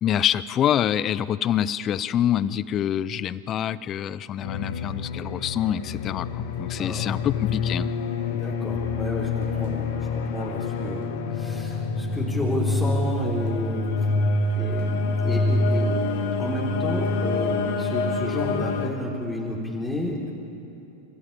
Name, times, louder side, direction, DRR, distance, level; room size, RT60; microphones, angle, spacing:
voice 1, 0.0-7.9, left 10 dB, 35° left, 19 dB, 0.6 m, -26 dB
sound 1, 4.4-18.9, left 3 dB, 60° left, 1.6 m, -26 dB
voice 2, 6.8-7.2 8.3-13.9 14.5-16.0 16.4-20.3, left 1 dB, 10° left, -3 dB, 3.8 m, -31 dB
26.0 x 14.0 x 8.8 m, 2.9 s
figure-of-eight pair, 90°, 0 cm